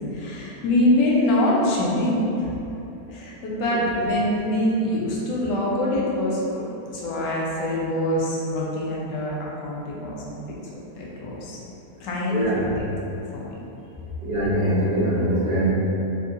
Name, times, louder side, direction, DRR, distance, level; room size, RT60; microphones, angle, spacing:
voice 1, 0.0-2.5 3.1-6.6 6.9-10.6 11.0-11.6 12.0-12.5 12.8-12.9 13.3-13.6, left 1 dB, 90° left, -4 dB, 1.3 m, -24 dB
voice 2, 12.3-12.7 14.2-15.7, right 1 dB, 45° right, -12 dB, 0.8 m, -23 dB
3.8 x 2.7 x 2.5 m, 3.0 s
omnidirectional pair, 1.8 m